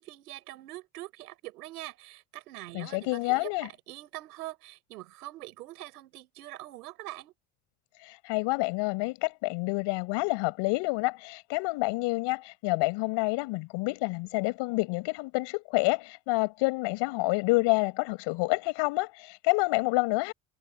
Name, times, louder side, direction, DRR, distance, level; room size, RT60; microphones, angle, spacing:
voice 1, 0.0-7.3, right 17 dB, 90° right, 6.6 m, -44 dB
voice 2, 2.7-3.7 8.0-20.3, left 25 dB, 65° left, 7.3 m, -28 dB
supercardioid pair, 100°, 45 cm